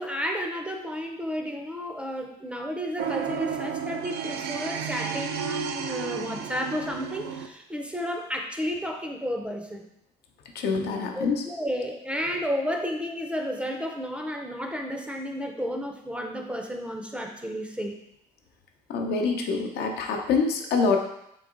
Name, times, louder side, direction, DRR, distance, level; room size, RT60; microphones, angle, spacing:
voice 1, 0.0-9.9 11.2-18.0, equal, 5° right, 2 dB, 0.5 m, -32 dB
sound 1, 3.0-7.5, right 7 dB, 70° right, 0.4 m, -32 dB
voice 2, 10.5-11.3 18.9-21.0, left 4 dB, 70° left, 3 dB, 0.6 m, -25 dB
3.9 x 2.8 x 3.6 m, 0.78 s
cardioid pair, 110°, 17 cm